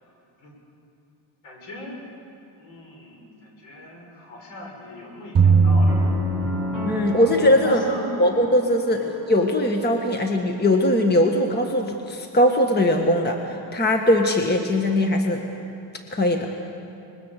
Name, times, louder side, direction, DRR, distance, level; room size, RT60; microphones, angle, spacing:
voice 1, 1.4-2.0 2.6-6.3 7.6-8.3 8.9-9.0, left 2 dB, 75° left, 0 dB, 6.6 m, -39 dB
sound 1, 5.4-7.1, right 4 dB, 30° right, 3.8 m, -18 dB
sound 2, 5.9-10.0, equal, ahead, 6.8 m, -31 dB
voice 2, 6.8-7.8 8.2-15.4 16.1-16.5, left 1 dB, 20° left, 3 dB, 1.6 m, -20 dB
25.0 x 21.5 x 6.8 m, 2.7 s
cardioid pair, 120°, 48 cm